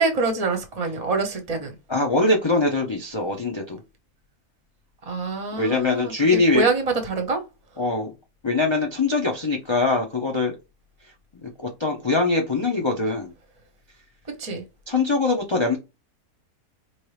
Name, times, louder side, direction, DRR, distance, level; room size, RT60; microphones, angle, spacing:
voice 1, 0.0-1.7 5.1-7.4 14.3-14.6, right 3 dB, 30° right, 0.8 m, -25 dB
voice 2, 1.9-3.8 5.5-6.7 7.8-8.1 8.4-10.5 11.4-13.3 14.9-15.8, left 3 dB, 45° left, 0.3 m, -22 dB
4.5 x 2.8 x 3.2 m
omnidirectional pair, 1.6 m